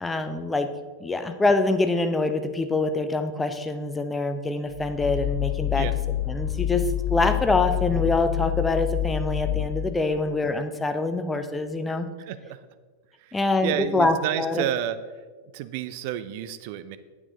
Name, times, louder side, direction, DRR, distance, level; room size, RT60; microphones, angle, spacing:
voice 1, 0.0-0.7 1.0-5.9 6.3-12.1 13.3-14.6, left 3 dB, 10° left, 8 dB, 0.7 m, -25 dB
sound 1, 4.7-10.2, left 13 dB, 45° left, 0.4 m, -27 dB
voice 2, 12.2-12.7 13.2-15.0 15.5-17.0, right 11 dB, 45° right, 13 dB, 0.5 m, -30 dB
8.9 x 8.2 x 3.9 m, 1.4 s
figure-of-eight pair, 90°, 0 cm